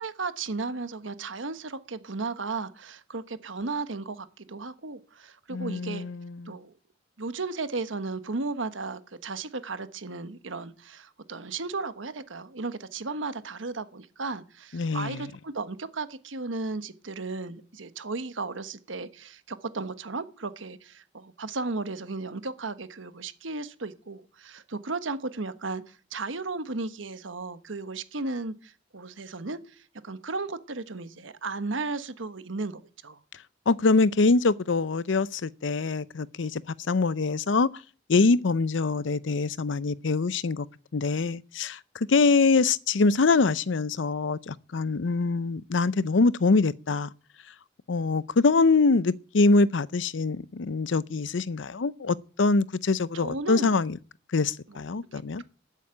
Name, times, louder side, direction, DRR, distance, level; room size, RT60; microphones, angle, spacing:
voice 1, 0.0-6.0 6.4-6.7 7.2-33.2 53.1-53.8 54.7-54.8, right 3 dB, 85° right, 1.2 m, -35 dB
voice 2, 5.5-6.5 14.7-15.3 33.7-36.6 36.9-37.7 38.1-40.7 40.9-41.8 42.1-47.1 47.9-54.0 54.3-55.4, left 3 dB, 80° left, 0.6 m, -24 dB
13.0 x 8.3 x 8.8 m
head